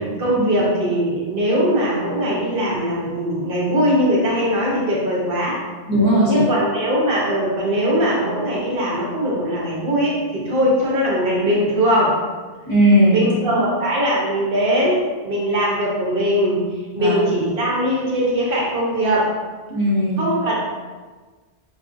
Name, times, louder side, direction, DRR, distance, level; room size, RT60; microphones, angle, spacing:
voice 1, 0.0-5.6 6.3-12.2 13.1-16.6 16.9-19.3 20.2-20.5, equal, 65° right, -5 dB, 1.0 m, -20 dB
voice 2, 5.9-6.4 12.7-13.3 16.9-17.2 19.7-20.3, equal, 20° left, -11 dB, 1.2 m, -17 dB
4.8 x 2.5 x 2.5 m, 1.3 s
omnidirectional pair, 1.0 m